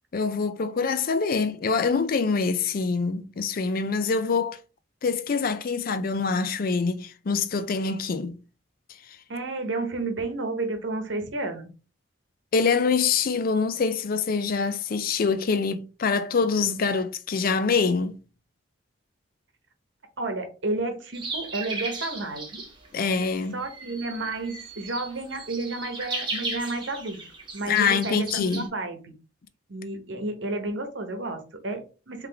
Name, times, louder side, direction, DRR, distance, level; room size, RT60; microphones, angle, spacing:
voice 1, 0.1-4.6 5.0-8.4 12.5-18.2 22.9-23.6 27.7-28.7, left 5 dB, 50° left, 0.4 m, -25 dB
voice 2, 9.3-11.7 20.2-22.6 23.5-27.2 27.5-29.1 29.7-32.3, right 2 dB, 65° right, 1.0 m, -31 dB
sound 1, 21.1-28.7, right 3 dB, 25° right, 1.2 m, -36 dB
3.7 x 3.2 x 3.4 m
head